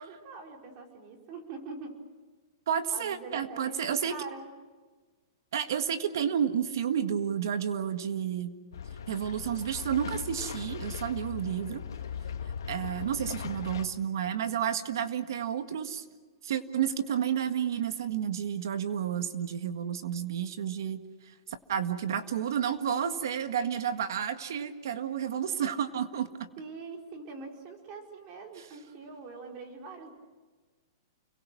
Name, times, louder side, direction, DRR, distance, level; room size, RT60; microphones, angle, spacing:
voice 1, 0.0-2.0 2.9-4.5 26.6-30.1, right 4 dB, 35° right, 2 dB, 4.9 m, -43 dB
voice 2, 2.7-4.2 5.5-8.5 9.1-11.8 12.7-16.0 16.4-21.0 21.7-26.3, right 8 dB, 70° right, 9 dB, 1.7 m, -31 dB
sound 1, 8.7-13.8, left 7 dB, 85° left, 1.9 m, -39 dB
30.0 x 23.0 x 6.2 m, 1.4 s
hypercardioid pair, 160°, 2 cm